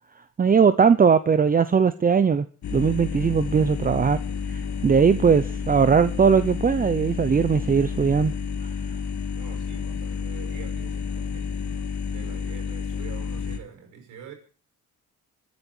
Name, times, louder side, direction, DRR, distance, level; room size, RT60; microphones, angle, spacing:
voice 1, 0.4-2.5 2.7-4.2 4.5-8.3, right 6 dB, 30° right, 0.8 m, -19 dB
sound 1, 2.6-13.6, left 6 dB, 65° left, 2.8 m, -30 dB
voice 2, 9.3-11.5 12.0-14.3, right 7 dB, 90° right, 5.8 m, -45 dB
26.5 x 9.7 x 4.6 m
cardioid pair, 90°, 30 cm